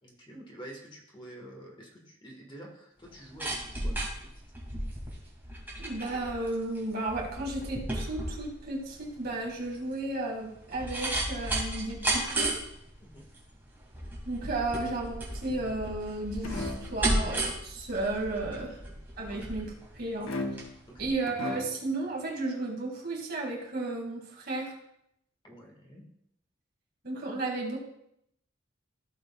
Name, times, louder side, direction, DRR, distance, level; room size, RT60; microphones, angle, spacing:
voice 1, 0.0-3.6 3.8-4.0 13.0-13.3 18.8-18.9 19.3-19.5 20.9-21.1 25.4-26.0, right 1 dB, 25° left, -1 dB, 1.7 m, -48 dB
sound 1, 3.0-20.7 21.0-21.1, right 1 dB, 10° right, 2.4 m, -34 dB
voice 2, 5.8-12.5 14.3-18.8 19.2-19.7 19.9-20.3 21.0-24.7 27.0-27.8, right 2 dB, 50° right, -1 dB, 2.3 m, -33 dB
sound 2, 15.5-16.0 16.4-17.0 20.3-20.9 21.3-21.9, left 2 dB, 80° left, 1.1 m, -37 dB
15.5 x 6.6 x 2.4 m, 0.75 s
head